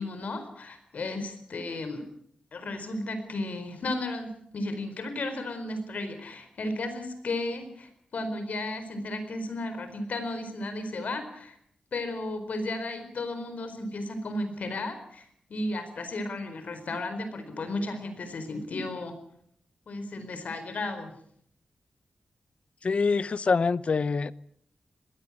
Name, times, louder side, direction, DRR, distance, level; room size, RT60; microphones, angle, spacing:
voice 1, 0.0-2.1 2.5-11.6 11.9-19.2 19.9-21.1, left 2 dB, 65° left, 4.6 m, -34 dB
voice 2, 22.8-24.3, left 4 dB, 50° left, 0.8 m, -25 dB
21.0 x 16.5 x 8.7 m
wide cardioid pair, 130°, 3 cm